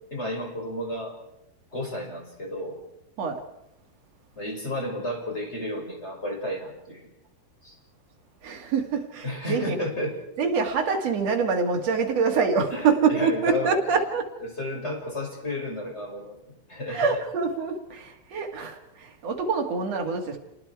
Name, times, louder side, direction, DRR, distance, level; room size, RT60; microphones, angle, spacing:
voice 1, 0.1-1.1 1.7-2.8 4.4-7.1 7.6-7.8 9.2-10.2 12.7-13.7 14.4-17.1, left 1 dB, 15° left, 1 dB, 5.7 m, -32 dB
voice 2, 8.4-9.8 10.4-14.3 16.9-20.4, right 5 dB, 45° right, 2 dB, 2.6 m, -25 dB
29.5 x 20.0 x 4.8 m, 0.86 s
omnidirectional pair, 5.0 m